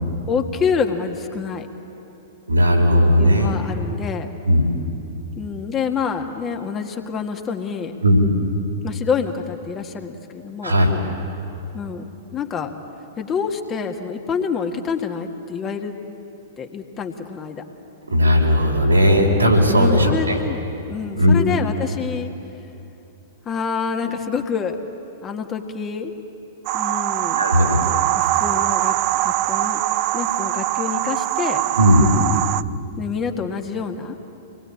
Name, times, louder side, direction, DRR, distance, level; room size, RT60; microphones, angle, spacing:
voice 1, 0.3-1.7 3.2-4.3 5.4-8.0 8.8-10.8 11.7-12.7 13.2-15.9 16.6-17.6 19.7-20.6 20.9-22.3 23.5-24.8 25.2-26.1 26.7-27.5 28.2-29.8 30.1-31.6 33.0-34.2, left 6 dB, 25° left, 4 dB, 1.8 m, -27 dB
voice 2, 2.5-3.5 4.5-4.7 8.0-8.2 10.6-10.9 18.1-20.4 21.2-21.3 27.4-27.8 31.8-32.1, equal, 85° right, 0 dB, 4.3 m, -16 dB
sound 1, 26.7-32.6, right 15 dB, 40° right, 0.5 m, -22 dB
26.5 x 20.5 x 8.6 m, 3.0 s
figure-of-eight pair, 100°, 0 cm